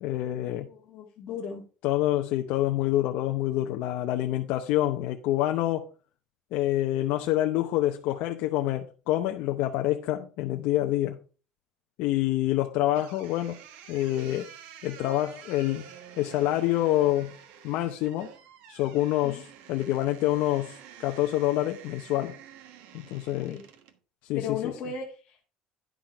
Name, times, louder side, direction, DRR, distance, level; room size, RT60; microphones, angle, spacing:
voice 1, 0.0-0.7 1.8-5.9 6.5-11.2 12.0-13.6 13.9-14.5 14.8-15.9 16.2-17.4 17.6-18.3 18.7-22.4 22.9-23.6 24.2-24.7, left 14 dB, 60° left, 0.7 m, -27 dB
voice 2, 0.7-1.6 19.2-19.4 23.4-23.6 24.4-25.5, left 6 dB, 35° left, 1.8 m, -36 dB
sound 1, 12.9-24.0, right 9 dB, 70° right, 1.3 m, -49 dB
10.5 x 6.1 x 4.5 m
cardioid pair, 180°, 3 cm